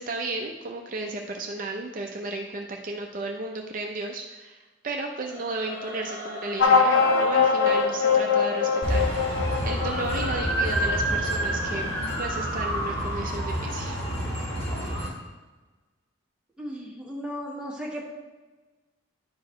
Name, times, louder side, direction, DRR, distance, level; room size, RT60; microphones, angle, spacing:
voice 1, 0.0-11.9 12.2-14.0, right 2 dB, 45° right, 2 dB, 0.5 m, -34 dB
Singing / Musical instrument, 5.2-12.3, left 1 dB, 50° left, 1.6 m, -42 dB
sound 1, 6.6-11.5, left 5 dB, 80° left, 0.6 m, -23 dB
sound 2, 8.8-15.1, right 1 dB, 30° left, 1.9 m, -28 dB
voice 2, 16.6-18.1, equal, 5° right, -3 dB, 1.1 m, -35 dB
10.0 x 4.6 x 3.1 m, 1.2 s
head